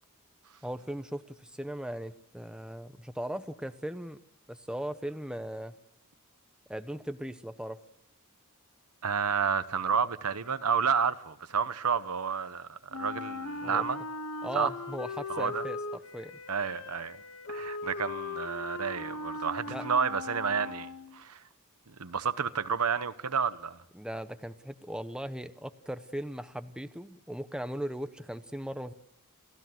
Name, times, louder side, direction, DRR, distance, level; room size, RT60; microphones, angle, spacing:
voice 1, 0.6-4.2 4.5-5.7 6.7-7.8 13.6-13.9 14.4-16.4 19.7-19.9 23.9-28.9, equal, 5° right, 0.9 m, -38 dB
voice 2, 9.0-14.0 14.5-14.7 15.3-15.6 16.5-17.2 17.5-21.4 22.0-23.8, right 6 dB, 85° right, 1.0 m, -30 dB
Wind instrument woodwind instrument, 12.9-21.2, left 3 dB, 70° left, 1.3 m, -39 dB
29.0 x 15.0 x 7.9 m
head